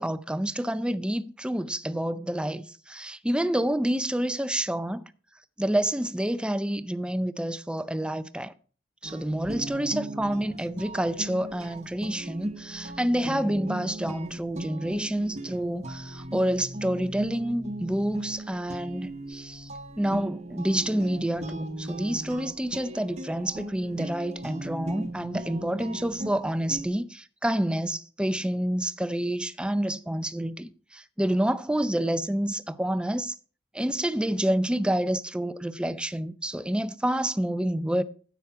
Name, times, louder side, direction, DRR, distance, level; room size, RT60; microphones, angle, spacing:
voice 1, 0.0-5.0 5.6-8.5 9.0-19.7 20.0-33.3 33.7-38.0, right 1 dB, 5° right, 0.5 m, -28 dB
sound 1, 9.0-26.9, right 1 dB, 40° right, 1.0 m, -38 dB
10.0 x 8.2 x 4.7 m
head